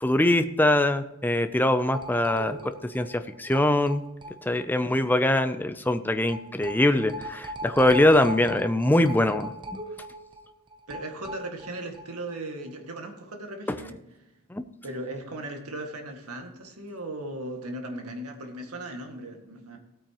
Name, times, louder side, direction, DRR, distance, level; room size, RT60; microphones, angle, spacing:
voice 1, 0.0-4.0 4.4-9.5 14.5-14.6, left 1 dB, 10° left, 9 dB, 0.5 m, -23 dB
sound 1, 1.9-4.7 4.9-5.0 5.3-5.4 6.3-12.0 12.3-12.4 12.7-12.8, right 1 dB, 20° right, 0.8 m, -39 dB
voice 2, 4.7-5.0 10.9-14.0 14.8-19.8, right 1 dB, 85° right, 4 dB, 2.0 m, -37 dB
16.0 x 8.7 x 3.0 m, 0.95 s
head